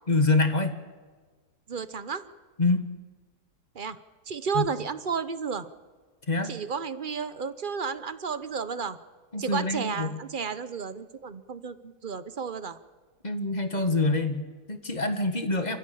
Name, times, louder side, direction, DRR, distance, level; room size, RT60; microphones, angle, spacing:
voice 1, 0.1-0.8 2.6-2.8 4.5-4.6 6.3-6.5 9.3-10.1 13.2-15.8, left 2 dB, 25° left, 8 dB, 1.6 m, -26 dB
voice 2, 1.7-2.3 3.7-4.0 4.3-5.7 6.4-9.0 9.4-12.8, right 6 dB, 40° right, 14 dB, 0.9 m, -32 dB
27.5 x 14.5 x 8.6 m, 1.5 s
omnidirectional pair, 1.7 m